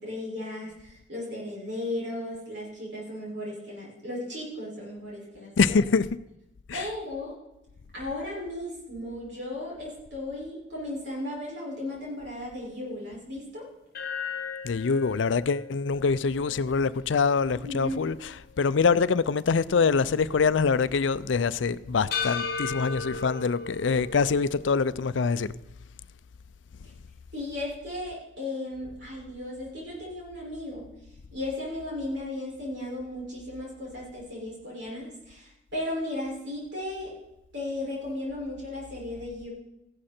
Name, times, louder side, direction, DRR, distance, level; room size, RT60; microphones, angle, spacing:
voice 1, 0.0-5.8 6.7-7.4 7.9-13.6 17.6-18.0 26.8-26.9 27.3-30.9 31.3-37.1 37.5-39.5, left 1 dB, 70° right, 5.8 m, -35 dB
voice 2, 5.6-6.1 6.7-6.8 14.6-18.3 18.6-25.5, left 5 dB, 85° left, 0.5 m, -24 dB
sound 1, 13.9-18.2 18.6-18.7 22.1-24.7, left 5 dB, 50° left, 1.3 m, -36 dB
15.0 x 11.5 x 4.4 m
head